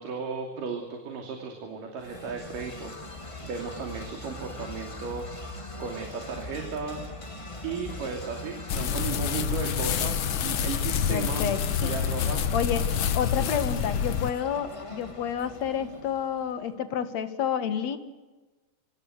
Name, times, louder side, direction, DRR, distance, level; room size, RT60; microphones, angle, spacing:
voice 1, 0.0-5.3 5.8-7.0 7.6-11.5 11.8-12.5 12.9-13.5, right 5 dB, 80° right, 3 dB, 4.4 m, -35 dB
sound 1, 2.0-16.7, left 2 dB, 20° left, 0.9 m, -41 dB
sound 2, 8.7-14.3, left 8 dB, 80° left, 1.1 m, -27 dB
voice 2, 11.1-11.9 12.5-12.8 13.1-18.0, left 8 dB, 60° left, 10 dB, 2.7 m, -29 dB
26.0 x 25.5 x 8.1 m, 1.2 s
omnidirectional pair, 3.7 m